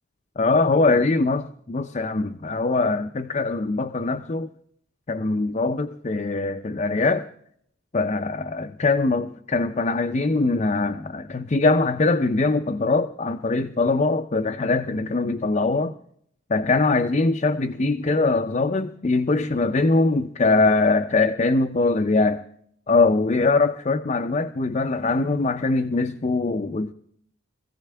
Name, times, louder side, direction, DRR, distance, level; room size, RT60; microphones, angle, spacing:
voice 1, 0.4-4.5 5.1-7.3 7.9-15.9 16.5-22.4 22.9-26.9, left 3 dB, 35° left, 0.5 m, -22 dB
21.5 x 15.5 x 3.4 m
head